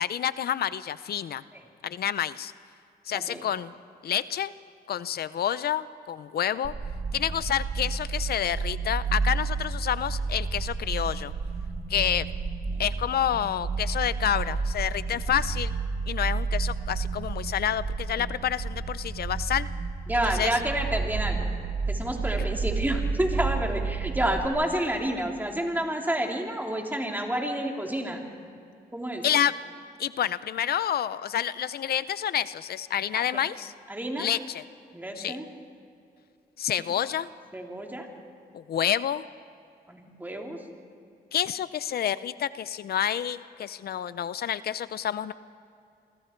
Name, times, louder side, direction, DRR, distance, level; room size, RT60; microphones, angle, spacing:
voice 1, 0.0-1.4 1.8-2.5 3.1-3.7 4.0-4.5 4.9-6.7 7.1-11.3 11.9-12.3 12.8-15.7 16.1-19.7 20.3-20.6 29.2-29.5 30.0-33.7 34.2-34.6 35.2-35.4 36.6-37.3 38.5-39.2 41.3-45.3, left 10 dB, 80° left, 15 dB, 0.6 m, -28 dB
voice 2, 3.1-3.4 12.7-12.8 20.1-21.5 21.9-28.2 28.9-29.2 33.1-33.4 33.9-34.3 34.9-35.5 36.8-36.9 37.5-38.1 39.9-40.6, right 1 dB, 10° right, 1 dB, 3.1 m, -29 dB
sound 1, 6.6-24.5, right 4 dB, 55° right, 1.9 m, -31 dB
29.0 x 23.5 x 4.5 m, 2.5 s
cardioid pair, 95°, 16 cm